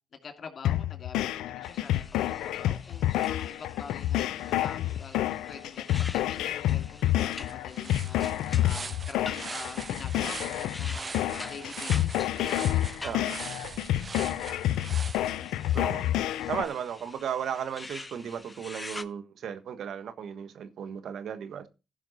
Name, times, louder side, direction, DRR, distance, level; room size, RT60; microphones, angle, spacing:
voice 1, 0.1-2.0 2.4-4.2 4.6-5.2 5.5-8.2 8.6-13.2, left 6 dB, 60° left, 2.4 m, -45 dB
sound 1, 0.6-16.6, left 13 dB, 85° left, 0.4 m, -29 dB
sound 2, 1.6-19.0, left 2 dB, 25° left, 0.9 m, -47 dB
sound 3, 6.7-6.8 7.1-15.9, right 4 dB, 40° right, 0.5 m, -42 dB
voice 2, 13.0-13.4 15.7-16.1 16.5-21.7, right 8 dB, 70° right, 1.4 m, -35 dB
15.5 x 5.8 x 4.1 m
supercardioid pair, 50°, 0 cm